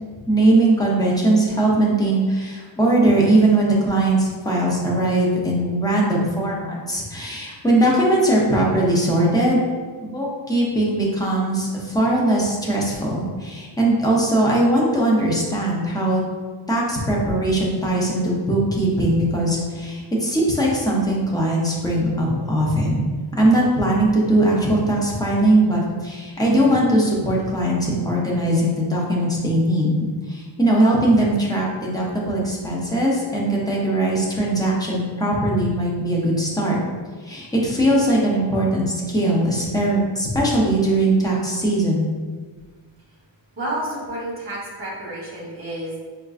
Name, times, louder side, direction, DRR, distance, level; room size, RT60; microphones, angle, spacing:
voice 1, 0.3-9.6 10.0-16.2 16.7-23.1 23.4-30.0 30.3-36.8 37.2-42.1, right 1 dB, 10° left, -4 dB, 0.5 m, -20 dB
voice 2, 43.6-46.0, right 1 dB, 25° right, -6 dB, 0.9 m, -30 dB
4.4 x 2.4 x 2.4 m, 1.5 s
wide cardioid pair, 165°, 50 cm